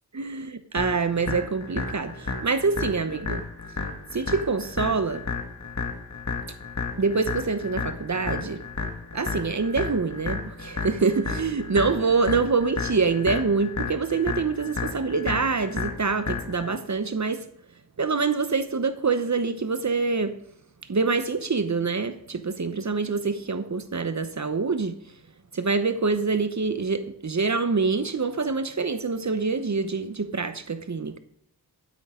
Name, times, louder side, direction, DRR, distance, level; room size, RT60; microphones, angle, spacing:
voice 1, 0.1-3.4 4.1-5.2 7.0-8.6 9.1-17.4 18.0-20.3 20.9-24.9 25.5-31.2, right 4 dB, 45° right, 1.0 m, -25 dB
sound 1, 0.8-16.8, left 4 dB, 45° left, 2.1 m, -32 dB
12.5 x 9.9 x 3.8 m
wide cardioid pair, 65°, 39 cm